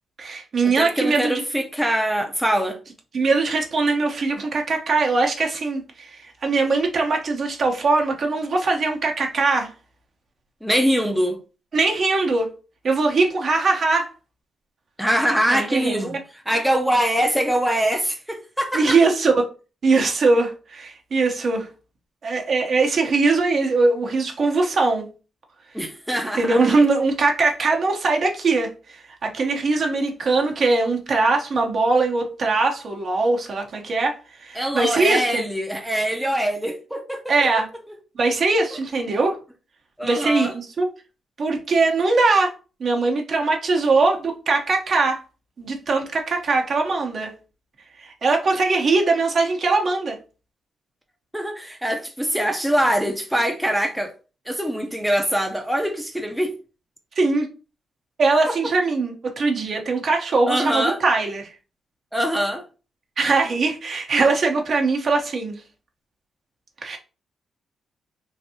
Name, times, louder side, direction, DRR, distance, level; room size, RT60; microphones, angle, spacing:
voice 1, 0.2-1.4 3.1-9.7 11.7-12.5 12.8-14.1 15.5-16.2 18.7-19.5 19.8-21.7 22.2-25.0 26.4-34.1 34.4-35.4 37.3-37.7 38.2-39.4 40.0-40.9 41.4-42.5 42.8-45.2 45.6-47.3 48.0-50.2 57.2-57.5 58.2-61.5 63.2-65.6 66.8-67.0, right 3 dB, 55° right, 0.8 m, -21 dB
voice 2, 0.8-2.8 10.6-11.4 15.0-16.2 16.5-19.0 25.7-26.6 34.6-37.5 40.0-40.5 51.3-54.1 54.5-56.6 58.5-58.6 60.5-61.0 62.1-62.6, equal, 5° right, 0.5 m, -23 dB
3.2 x 2.6 x 2.8 m
cardioid pair, 100°, 0 cm